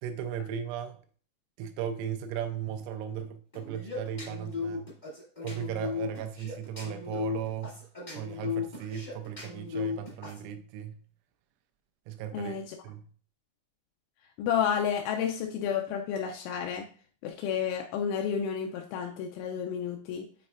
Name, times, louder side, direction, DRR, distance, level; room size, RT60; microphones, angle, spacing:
voice 1, 0.0-1.0 1.6-4.9 5.4-7.8 8.1-11.0 12.1-12.5 12.8-13.0, right 9 dB, 90° right, 3.3 m, -36 dB
sound 1, 3.5-10.4, left 6 dB, 55° left, 0.5 m, -36 dB
voice 2, 12.3-12.8 14.4-16.9 17.2-20.3, left 8 dB, 90° left, 2.6 m, -31 dB
9.2 x 4.2 x 2.5 m
omnidirectional pair, 5.9 m